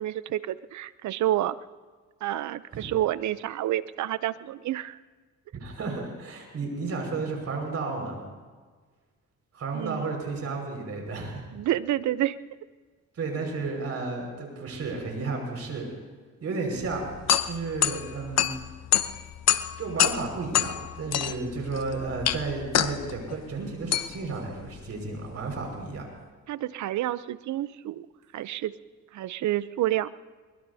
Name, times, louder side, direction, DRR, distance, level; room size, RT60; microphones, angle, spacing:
voice 1, 0.0-1.5 2.2-5.0 9.7-10.1 11.5-12.4 26.5-28.1 28.3-28.7 29.1-30.1, right 13 dB, 70° right, 16 dB, 0.7 m, -29 dB
voice 2, 5.5-8.2 9.5-11.5 13.2-15.9 16.4-17.1 17.4-18.5 19.8-26.1, right 3 dB, 55° right, 1 dB, 5.4 m, -32 dB
sound 1, 16.8-26.0, left 11 dB, 60° left, 0.8 m, -28 dB
23.0 x 21.0 x 2.8 m, 1.5 s
cardioid pair, 90°, 30 cm